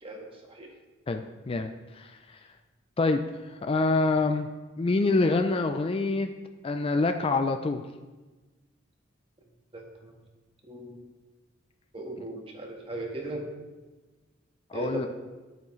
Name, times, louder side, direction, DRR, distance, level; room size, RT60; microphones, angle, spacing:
voice 1, 0.0-0.7 9.7-10.1 10.6-11.0 11.9-13.5 14.7-15.1, right 2 dB, 30° right, 1 dB, 1.5 m, -37 dB
voice 2, 1.1-2.2 3.0-4.5 4.8-6.3 6.6-7.8 14.7-15.1, left 3 dB, 30° left, 7 dB, 0.4 m, -26 dB
11.0 x 8.2 x 3.1 m, 1.2 s
head